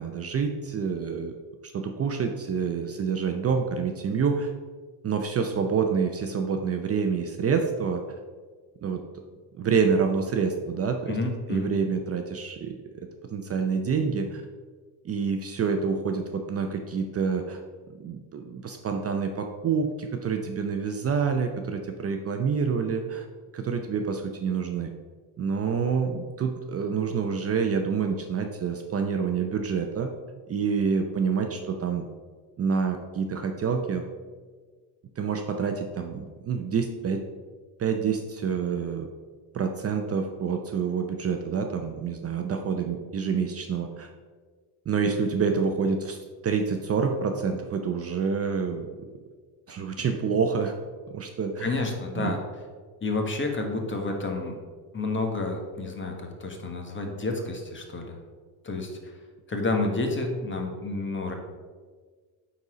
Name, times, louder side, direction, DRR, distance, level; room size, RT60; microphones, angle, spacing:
voice 1, 0.0-1.3 1.6-4.5 5.0-8.0 8.8-9.0 9.6-11.2 11.5-12.7 13.3-14.4 15.0-17.6 17.9-23.3 23.5-24.9 25.4-30.1 30.5-32.1 32.6-34.0 35.2-37.2 37.8-39.1 39.5-44.1 44.9-48.9 49.7-50.7 51.1-51.9 52.2-52.3, right 6 dB, 30° right, 4 dB, 0.6 m, -27 dB
voice 2, 11.1-11.7 51.6-52.4 53.0-54.5 54.9-58.2 58.6-59.1 59.5-61.3, left 2 dB, 25° left, 3 dB, 1.4 m, -30 dB
8.8 x 4.2 x 4.9 m, 1.5 s
cardioid pair, 115°, 45 cm